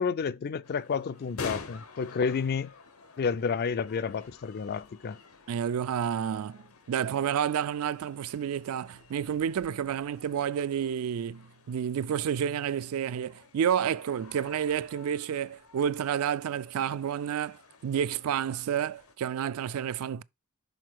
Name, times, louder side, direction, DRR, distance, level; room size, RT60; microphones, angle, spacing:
voice 1, 0.0-2.7 3.2-5.2, left 5 dB, 45° left, 0.3 m, -30 dB
sound 1, 0.6-19.2, left 4 dB, 75° left, 1.1 m, -49 dB
voice 2, 5.5-6.6 6.9-20.2, right 8 dB, 75° right, 0.3 m, -30 dB
6.3 x 4.1 x 4.6 m
head